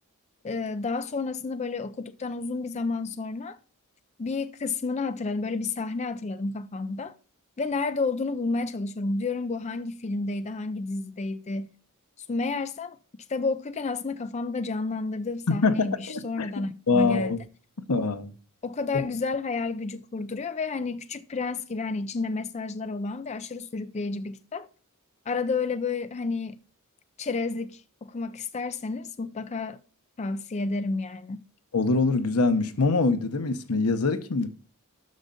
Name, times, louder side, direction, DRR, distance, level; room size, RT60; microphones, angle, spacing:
voice 1, 0.4-3.6 4.2-7.2 7.6-11.7 12.3-13.0 13.3-17.4 18.6-24.7 25.3-26.6 27.2-29.8 30.2-31.4, left 3 dB, 30° left, 0.4 m, -31 dB
voice 2, 15.5-16.5 16.9-17.4 17.9-18.3 31.7-34.5, left 3 dB, 85° left, 0.9 m, -24 dB
6.4 x 6.4 x 6.7 m
head